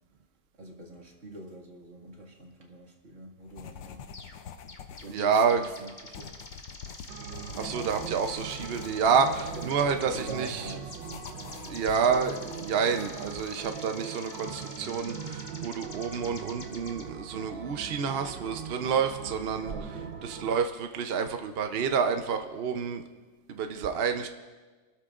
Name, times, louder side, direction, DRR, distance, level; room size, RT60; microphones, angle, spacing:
voice 1, 0.5-4.1 5.0-6.4 9.5-11.2 19.6-20.2, right 1 dB, 40° right, 0 dB, 2.2 m, -44 dB
sound 1, 3.4-13.7, left 7 dB, 80° left, 1.4 m, -47 dB
sound 2, 4.1-4.4 4.7-17.0, left 2 dB, 30° left, 1.2 m, -47 dB
voice 2, 5.1-5.6 7.6-10.7 11.7-19.7 20.2-23.0 23.5-24.3, right 6 dB, 65° right, 6 dB, 0.6 m, -28 dB
sound 3, 7.1-20.6, right 7 dB, 85° right, 1.5 m, -41 dB
29.5 x 13.0 x 2.5 m, 1.3 s
omnidirectional pair, 2.0 m